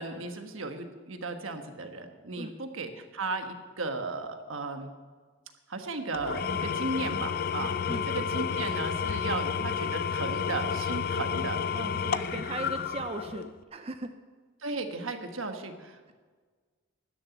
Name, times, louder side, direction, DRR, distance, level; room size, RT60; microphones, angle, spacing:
voice 1, 0.0-4.9 5.7-7.7 8.1-11.6 14.6-16.1, right 3 dB, 80° right, 6 dB, 1.3 m, -35 dB
Engine / Tools, 6.1-13.6, left 7 dB, 45° left, 0.4 m, -31 dB
voice 2, 11.7-14.2, right 2 dB, 30° right, 8 dB, 0.5 m, -38 dB
13.0 x 7.0 x 9.7 m, 1.5 s
head